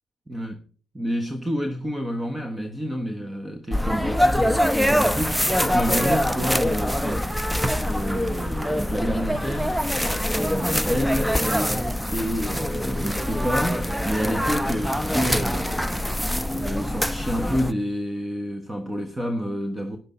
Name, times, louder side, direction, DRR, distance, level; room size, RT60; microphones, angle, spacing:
voice 1, 0.3-0.6 0.9-7.4 7.8-9.9 10.4-15.7 16.5-20.0, equal, 15° right, 1.2 m, -29 dB
sound 1, 3.7-17.7, equal, ahead, 0.7 m, -24 dB
sound 2, 9.2-12.0 14.4-15.8, right 1 dB, 30° right, 5.3 m, -57 dB
13.0 x 10.5 x 4.0 m
cardioid pair, 90°, 0 cm